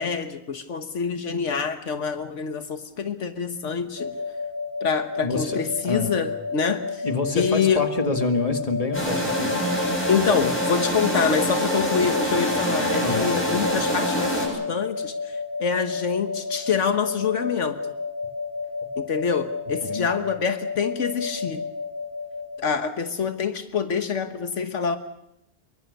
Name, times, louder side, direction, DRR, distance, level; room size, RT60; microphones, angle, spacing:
voice 1, 0.0-4.2 4.8-7.0 7.3-7.9 10.1-17.8 19.0-21.6 22.6-25.0, left 6 dB, 80° left, 9 dB, 1.6 m, -26 dB
sound 1, 4.0-22.6, left 4 dB, 45° left, 5.2 m, -32 dB
voice 2, 5.2-5.6 5.8-6.2 7.0-9.6 13.0-13.4 19.8-20.1, left 3 dB, 30° left, 6 dB, 2.2 m, -27 dB
sound 2, 8.9-14.5, equal, 10° left, 7.1 m, -25 dB
25.5 x 23.0 x 6.6 m, 0.79 s
omnidirectional pair, 1.2 m